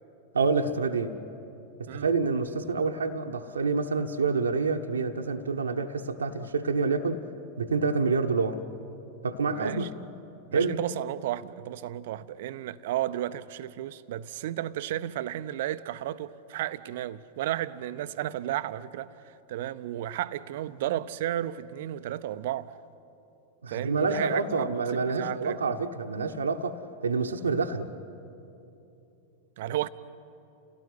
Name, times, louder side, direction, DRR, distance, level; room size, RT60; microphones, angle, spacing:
voice 1, 0.3-1.1 1.8-7.2 7.6-8.6 9.2-9.9 10.5-10.8 23.6-27.9, right 4 dB, 70° right, 1.1 m, -27 dB
voice 2, 9.5-9.9 10.5-22.7 23.7-25.8 29.6-29.9, right 13 dB, 55° right, 0.7 m, -33 dB
29.0 x 17.5 x 9.4 m
figure-of-eight pair, 90°, 0 cm